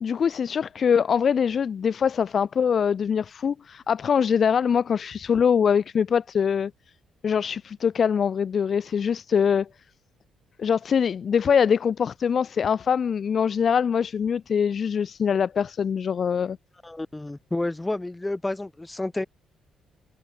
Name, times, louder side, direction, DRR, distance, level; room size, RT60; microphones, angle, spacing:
voice 1, 0.0-6.7 7.2-9.7 10.6-16.6, left 7 dB, 50° left, 1.2 m, -23 dB
voice 2, 16.8-19.3, left 2 dB, 15° left, 7.9 m, -30 dB
cardioid pair, 90°, 0 cm